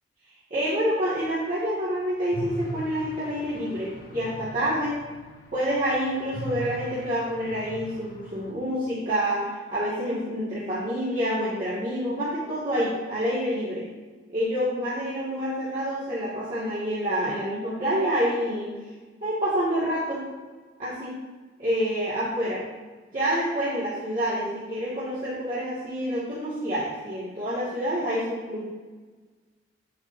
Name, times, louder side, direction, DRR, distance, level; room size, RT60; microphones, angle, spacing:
voice 1, 0.5-4.9 5.5-13.8 14.3-18.7 19.2-20.2 20.8-21.1 21.6-22.6 23.1-28.6, equal, 45° right, -11 dB, 2.2 m, -27 dB
sound 1, 2.3-8.5, right 1 dB, 50° left, 1.0 m, -40 dB
8.7 x 7.9 x 2.8 m, 1.4 s
head